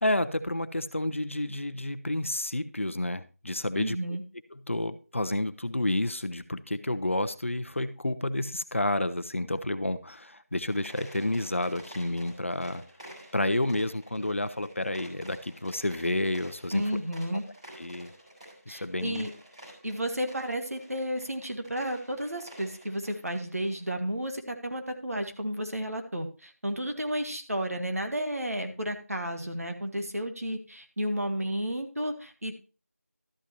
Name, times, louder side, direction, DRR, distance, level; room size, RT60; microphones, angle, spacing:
voice 1, 0.0-4.0 4.5-12.8 13.3-16.8 17.8-18.1 18.7-19.3, left 1 dB, 55° left, 12 dB, 0.7 m, -30 dB
voice 2, 3.8-4.2 16.7-17.4 18.7-19.3 19.8-32.5, equal, 70° right, 5 dB, 1.7 m, -32 dB
sound 1, 10.6-23.8, right 1 dB, 25° right, 3.4 m, -50 dB
12.5 x 8.3 x 2.8 m, 0.34 s
figure-of-eight pair, 170°, 8 cm